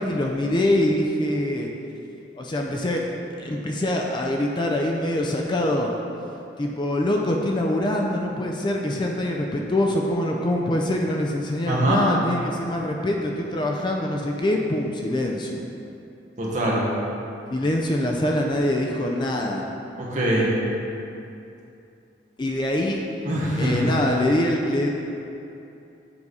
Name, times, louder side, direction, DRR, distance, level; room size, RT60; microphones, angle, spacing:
voice 1, 0.0-1.7 2.4-3.1 3.4-5.9 6.6-15.6 17.5-19.6 22.4-23.0 23.6-24.9, left 1 dB, 25° left, 0 dB, 0.4 m, -24 dB
voice 2, 11.7-12.0 16.4-16.8 20.0-20.5 23.2-23.9, right 1 dB, 40° right, -5 dB, 1.4 m, -23 dB
7.2 x 4.9 x 4.1 m, 2.7 s
head